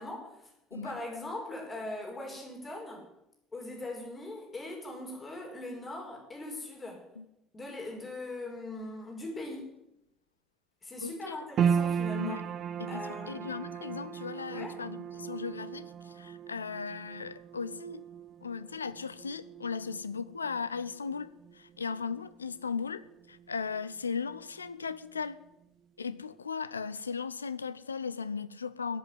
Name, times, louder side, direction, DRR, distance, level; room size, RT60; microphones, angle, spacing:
voice 1, 0.0-3.1 3.5-7.1 7.5-9.6 10.8-12.4 12.9-13.5 14.5-14.8, left 1 dB, 25° left, 0 dB, 5.5 m, -40 dB
voice 2, 11.0-11.4 12.1-12.4 12.8-18.0 18.4-25.4 26.0-29.0, left 5 dB, 80° left, 16 dB, 0.6 m, -37 dB
sound 1, 11.6-24.0 24.2-25.2 25.6-25.7, right 7 dB, 45° right, 0.8 m, -36 dB
15.0 x 8.2 x 9.6 m, 0.87 s
figure-of-eight pair, 55°, 0 cm